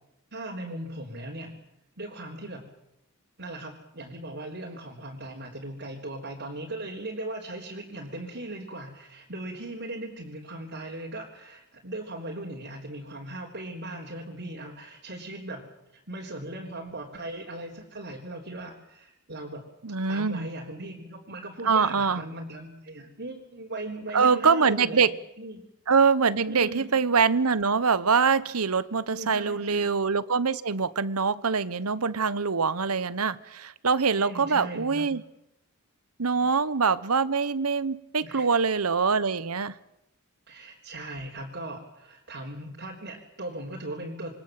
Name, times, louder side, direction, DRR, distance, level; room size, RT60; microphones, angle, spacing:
voice 1, 0.3-1.5 2.0-2.7 3.4-19.6 20.1-25.6 26.5-26.9 29.1-29.9 34.1-35.1 36.4-36.6 38.2-38.5 40.5-44.3, right 1 dB, 55° right, -1 dB, 3.8 m, -38 dB
voice 2, 19.8-20.5 21.6-22.2 24.1-25.1 25.9-35.2 36.2-39.7, right 5 dB, 90° right, 17 dB, 1.1 m, -24 dB
27.5 x 23.5 x 7.6 m, 0.87 s
head